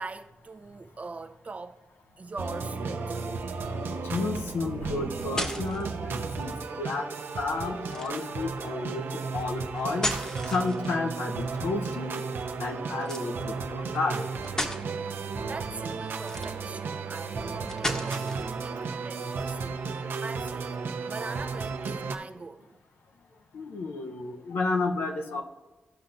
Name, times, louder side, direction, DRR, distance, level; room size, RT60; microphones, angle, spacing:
voice 1, 0.0-1.8 2.2-3.3 15.4-18.3 18.6-20.7 21.1-22.8, right 3 dB, 40° right, 0.6 m, -41 dB
sound 1, 2.4-22.2, right 4 dB, 80° right, 0.7 m, -34 dB
voice 2, 4.0-7.1 7.3-10.1 10.5-12.2 12.6-14.3 23.5-25.4, left 3 dB, 90° left, 0.8 m, -31 dB
sound 2, 5.2-5.9 7.8-8.3 9.8-11.1 13.0-13.3 14.0-14.1 14.4-14.8 16.2-16.8 17.7-18.5, left 1 dB, 20° left, 1.0 m, -34 dB
14.5 x 5.6 x 2.6 m
cardioid pair, 65°, 4 cm